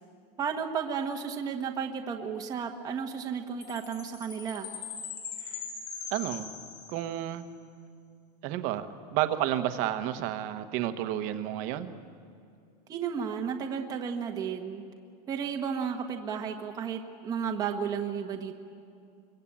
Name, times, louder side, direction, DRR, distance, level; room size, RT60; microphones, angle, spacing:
voice 1, 0.4-4.7 12.9-14.8 15.3-18.6, right 7 dB, 15° right, 2 dB, 1.2 m, -33 dB
Chime, 3.6-7.3, left 6 dB, 40° left, 3.9 m, -41 dB
voice 2, 6.1-6.5 6.9-7.5 8.4-12.0, right 12 dB, 40° right, 8 dB, 1.2 m, -31 dB
25.5 x 22.5 x 8.8 m, 2.4 s
supercardioid pair, 175°, 21 cm